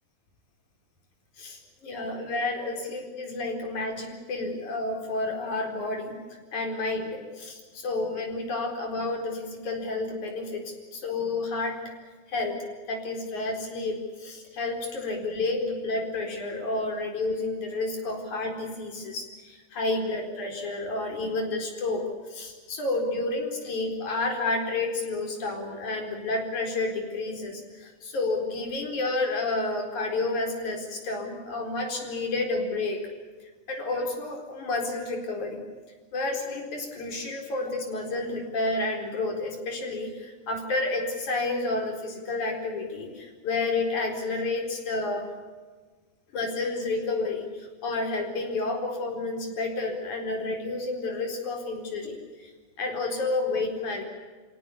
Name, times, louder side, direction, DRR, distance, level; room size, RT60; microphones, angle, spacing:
voice 1, 1.4-11.8 12.3-33.1 33.4-35.6 36.1-45.3 46.3-52.5 52.8-54.0, left 2 dB, 85° left, 3 dB, 5.7 m, -30 dB
27.5 x 17.5 x 8.5 m, 1.4 s
omnidirectional pair, 3.3 m